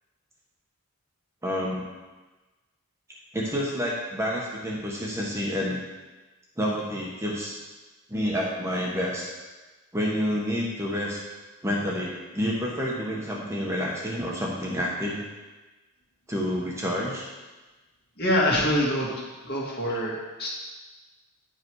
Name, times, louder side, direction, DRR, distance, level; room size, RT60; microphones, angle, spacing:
voice 1, 1.4-1.8 3.3-5.8 6.6-7.6 8.1-9.3 9.9-11.2 11.6-15.2 16.3-17.3, equal, 10° right, -4 dB, 1.2 m, -29 dB
voice 2, 18.2-19.1 19.4-20.5, left 1 dB, 45° left, -4 dB, 1.9 m, -25 dB
10.0 x 5.4 x 4.7 m, 1.2 s
head